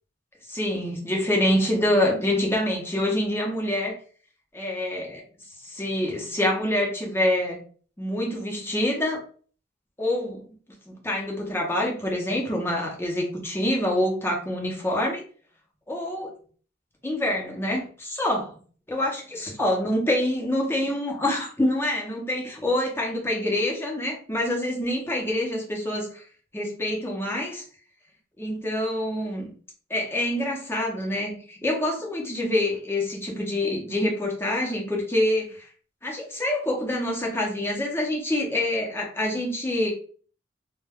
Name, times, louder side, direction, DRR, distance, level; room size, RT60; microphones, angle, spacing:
voice 1, 0.5-3.9 4.5-5.2 5.6-7.6 8.0-9.2 10.0-10.4 10.9-15.2 15.9-16.3 17.0-18.5 18.9-26.2 26.5-27.6 28.4-29.5 29.9-35.7 36.0-39.9, left 1 dB, 15° left, -1 dB, 0.7 m, -26 dB
2.2 x 2.2 x 3.4 m, 0.43 s
head